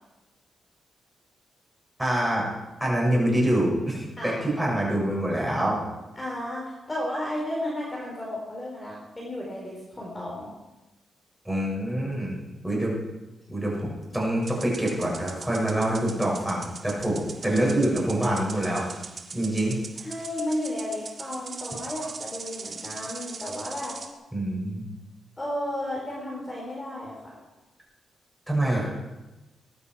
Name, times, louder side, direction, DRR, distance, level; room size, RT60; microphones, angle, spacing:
voice 1, 2.0-2.5 2.8-5.8 11.5-12.9 13.5-18.9 19.3-19.8 24.3-24.9 28.5-28.9, right 1 dB, 5° right, -3 dB, 7.0 m, -25 dB
voice 2, 6.2-10.5 20.0-24.0 25.4-27.4, left 1 dB, 15° left, -3 dB, 4.2 m, -33 dB
sound 1, 14.4-24.1, right 4 dB, 45° right, 1.8 m, -41 dB
21.0 x 12.0 x 4.9 m, 1.1 s
cardioid pair, 110°, 0 cm